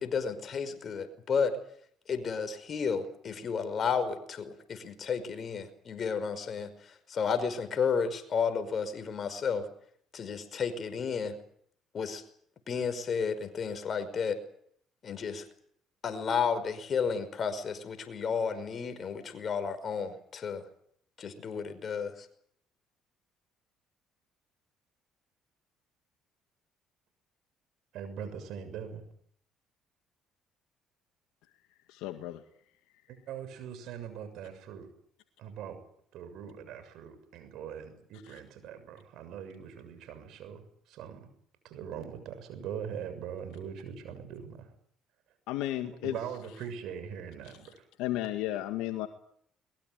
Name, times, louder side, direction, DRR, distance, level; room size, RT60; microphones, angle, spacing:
voice 1, 0.0-1.6 2.1-9.7 10.1-11.4 11.9-12.2 12.7-14.4 15.0-15.5 16.0-20.6 21.2-22.3, left 6 dB, 50° left, 10 dB, 5.3 m, -32 dB
voice 2, 27.9-29.0 33.3-34.9 35.4-35.8 36.1-41.3 41.6-44.7 46.0-47.8, right 8 dB, 70° right, 10 dB, 6.8 m, -41 dB
voice 3, 31.9-32.4 38.2-38.4 45.5-46.2 47.4-47.7 48.0-49.1, left 14 dB, 80° left, 6 dB, 1.9 m, -34 dB
22.5 x 22.0 x 9.4 m, 0.67 s
supercardioid pair, 70°, 0 cm